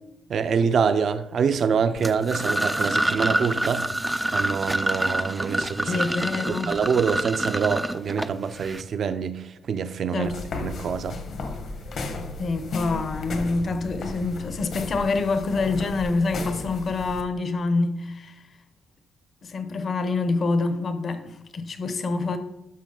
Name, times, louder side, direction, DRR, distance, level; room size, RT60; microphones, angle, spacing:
voice 1, 0.3-3.9 4.3-5.9 6.5-10.3 10.6-11.2, right 6 dB, 55° right, 0.6 m, -25 dB
sound 1, 2.0-8.8, right 1 dB, 10° right, 0.4 m, -27 dB
voice 2, 5.8-6.8 10.1-10.4 12.4-18.3 19.4-22.4, left 3 dB, 45° left, 0.9 m, -26 dB
sound 2, 10.2-17.2, left 3 dB, 60° left, 1.3 m, -35 dB
12.0 x 6.2 x 3.9 m
cardioid pair, 130°, 0 cm